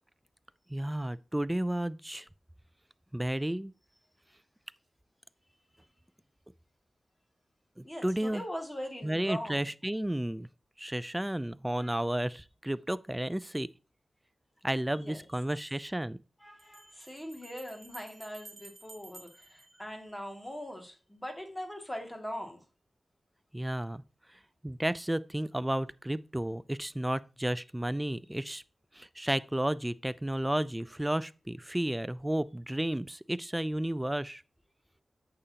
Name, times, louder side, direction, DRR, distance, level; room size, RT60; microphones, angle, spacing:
voice 1, 0.7-2.3 3.1-3.7 7.8-8.4 9.0-10.5 10.8-13.7 14.6-16.2 23.5-24.0 24.6-28.6 28.9-34.4, right 1 dB, 10° right, 0.4 m, -32 dB
voice 2, 7.8-9.7 11.8-12.0 14.9-15.2 16.4-22.6, equal, 10° left, 2.2 m, -41 dB
Bell, 16.6-20.5, right 2 dB, 35° right, 0.9 m, -53 dB
8.7 x 6.8 x 2.9 m
wide cardioid pair, 70°, 0 cm